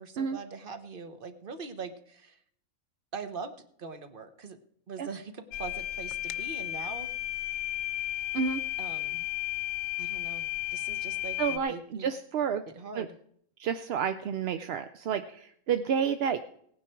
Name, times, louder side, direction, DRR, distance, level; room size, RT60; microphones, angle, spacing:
voice 1, 0.0-2.4 3.1-4.6 4.9-7.1 8.8-9.3 10.0-12.1 12.7-13.1, right 5 dB, 40° right, 9 dB, 1.2 m, -42 dB
sound 1, 5.5-11.6, left 16 dB, 70° left, 1.0 m, -34 dB
voice 2, 11.4-12.6 13.0-13.1 13.6-16.4, right 7 dB, 60° right, 9 dB, 0.7 m, -30 dB
17.5 x 9.5 x 4.5 m, 0.67 s
omnidirectional pair, 1.5 m